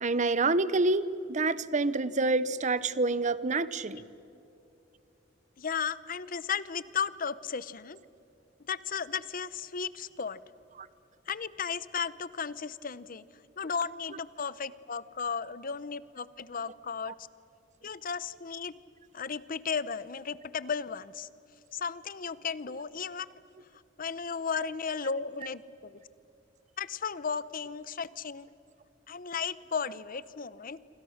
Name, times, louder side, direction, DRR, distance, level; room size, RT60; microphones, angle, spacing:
voice 1, 0.0-4.0 10.8-10.9, right 3 dB, 40° right, 16 dB, 0.9 m, -27 dB
voice 2, 5.6-8.0 8.7-10.4 11.3-13.2 13.6-17.1 17.8-18.7 19.1-21.3 21.7-23.3 24.0-25.9 26.8-28.5 29.1-30.8, left 6 dB, 50° left, 17 dB, 0.8 m, -35 dB
27.5 x 25.5 x 6.6 m, 2.8 s
head